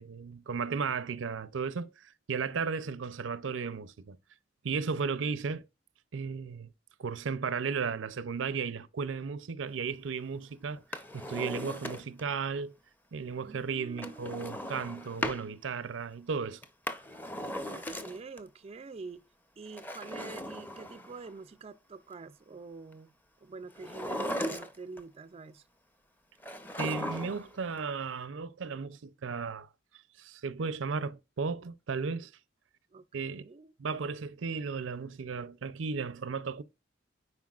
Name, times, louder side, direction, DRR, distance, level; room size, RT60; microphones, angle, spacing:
voice 1, 0.0-4.2 4.6-5.7 6.1-6.7 7.0-12.8 13.1-16.6 26.8-29.7 30.2-32.3 33.1-33.4 33.8-36.6, right 5 dB, 80° right, 0.5 m, -35 dB
Drawer open or close, 10.8-12.3 14.0-15.5 16.6-18.4 19.7-21.3 23.7-25.0 26.4-27.5 27.8-27.9, left 1 dB, 10° left, 0.6 m, -38 dB
voice 2, 13.4-14.3 17.6-19.2 19.6-23.1 23.4-25.6 32.9-33.7, right 4 dB, 30° right, 0.3 m, -46 dB
9.5 x 4.5 x 2.4 m
head